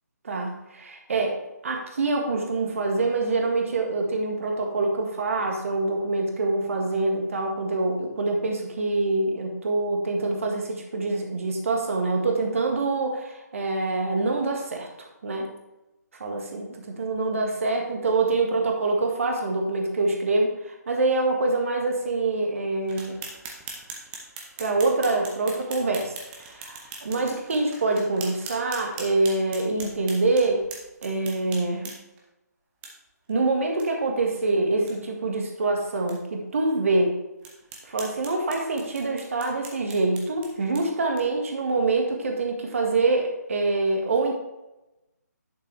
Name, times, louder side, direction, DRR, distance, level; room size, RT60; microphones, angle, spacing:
voice 1, 0.2-1.3 1.6-14.9 15.2-15.5 16.2-23.2 24.6-26.1 26.4-30.6 31.0-31.9 33.3-37.2 37.9-44.4, right 3 dB, 50° right, 2 dB, 1.7 m, -25 dB
sound 1, 22.9-32.2 32.8-32.9 33.3-33.4 33.8-33.9 34.2-34.3 34.7-34.9 35.5-35.6 36.1-36.2 36.7-36.8 37.4-41.5, right 3 dB, 15° right, 1.1 m, -42 dB
11.0 x 5.5 x 3.4 m, 0.97 s
figure-of-eight pair, 145°, 9 cm